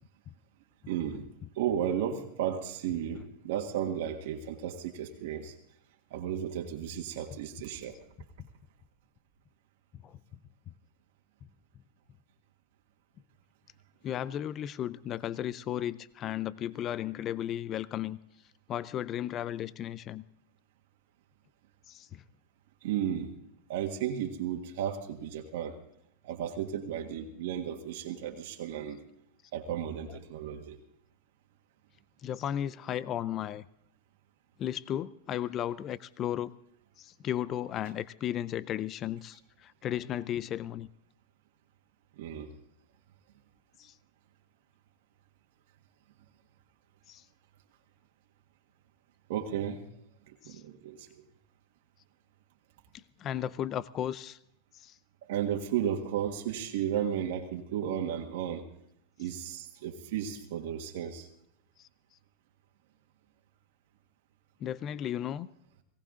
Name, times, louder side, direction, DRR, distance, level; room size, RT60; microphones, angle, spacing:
voice 1, 0.9-1.2 1.5-5.5 6.1-8.0 22.8-23.3 23.7-25.8 26.2-29.0 29.5-30.8 42.2-42.5 49.3-49.9 50.3-51.2 55.2-58.7 59.2-61.3, right 9 dB, 70° right, 3 dB, 1.7 m, -34 dB
voice 2, 14.0-18.2 18.7-20.2 21.9-22.2 30.1-30.2 32.2-33.6 34.6-36.5 37.0-40.9 43.8-43.9 47.1-47.2 50.4-50.5 52.9-54.4 54.7-55.0 59.2-59.3 60.3-60.4 61.8-61.9 64.6-65.5, left 11 dB, 35° left, 18 dB, 0.5 m, -35 dB
18.5 x 17.5 x 3.8 m, 0.74 s
supercardioid pair, 120°, 0 cm